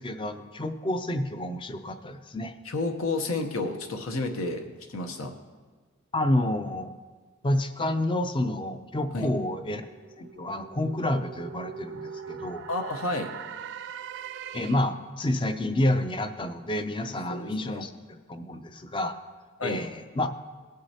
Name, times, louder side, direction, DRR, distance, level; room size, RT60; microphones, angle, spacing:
voice 1, 0.0-2.6 6.1-6.9 7.4-9.9 10.2-12.7 14.5-17.9 18.3-19.2 19.6-20.3, left 1 dB, 25° left, 9 dB, 0.5 m, -29 dB
voice 2, 2.6-4.6 4.9-5.3 9.1-9.3 12.7-13.3 17.3-17.8 19.6-19.8, left 2 dB, 75° left, 5 dB, 0.9 m, -30 dB
sound 1, 9.5-15.1, right 7 dB, 55° right, 0.4 m, -41 dB
19.0 x 6.4 x 2.8 m, 1.4 s
head